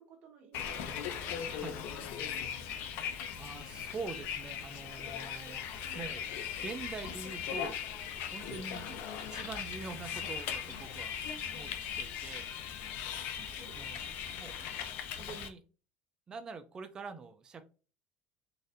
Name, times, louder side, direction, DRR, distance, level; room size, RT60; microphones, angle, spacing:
voice 1, 0.0-2.6 5.7-6.0 8.8-9.0 13.3-14.8, right 4 dB, 45° right, 0 dB, 1.2 m, -56 dB
Bus, 0.5-15.5, left 8 dB, 60° left, 0.5 m, -39 dB
voice 2, 3.1-5.6 5.9-6.3 6.6-7.8 8.3-8.9 9.2-11.2 11.5-11.7 12.0-12.5 13.7-14.0 14.4-14.6 15.2-15.6 16.3-17.6, right 4 dB, 20° right, 8 dB, 0.3 m, -44 dB
4.0 x 2.5 x 2.5 m, 0.34 s
cardioid pair, 165°, 4 cm